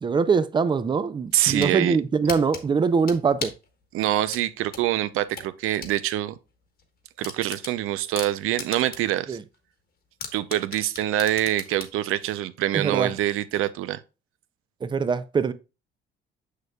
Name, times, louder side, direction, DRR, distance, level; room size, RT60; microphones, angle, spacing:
voice 1, 0.0-3.5 9.3-9.4 12.7-13.1 14.8-15.5, right 5 dB, 20° right, 0.4 m, -23 dB
sound 1, 1.3-1.8 2.3-3.7 4.3-6.0 6.3-6.4 6.8-6.9 7.2-9.2 9.5-9.6 10.2-12.0, left 5 dB, 45° left, 1.3 m, -36 dB
voice 2, 1.3-2.0 3.9-6.3 7.2-9.4 10.3-14.0, right 13 dB, 85° right, 0.6 m, -25 dB
6.6 x 6.5 x 2.3 m
cardioid pair, 135°, 21 cm